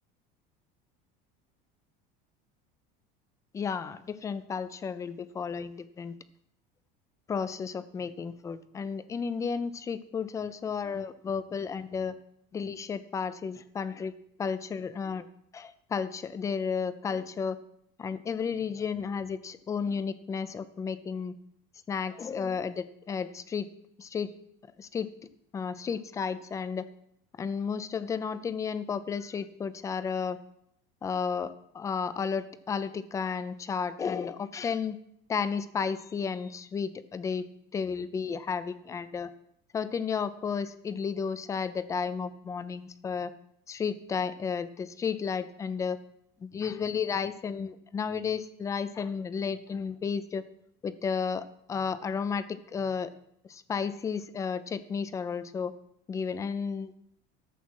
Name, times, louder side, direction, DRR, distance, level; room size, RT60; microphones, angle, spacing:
voice 1, 3.5-6.1 7.3-12.1 12.5-14.1 14.4-15.2 15.5-17.6 18.0-21.3 21.9-23.7 24.0-24.3 24.8-25.1 25.5-26.9 27.4-30.4 31.0-35.0 35.3-37.5 37.7-39.3 39.7-43.3 43.7-46.0 46.4-50.4 50.8-51.4 51.7-53.1 53.4-55.7 56.1-56.9, left 6 dB, 15° left, 15 dB, 0.4 m, -33 dB
13.0 x 7.3 x 6.3 m, 0.73 s
cardioid pair, 175°, 21 cm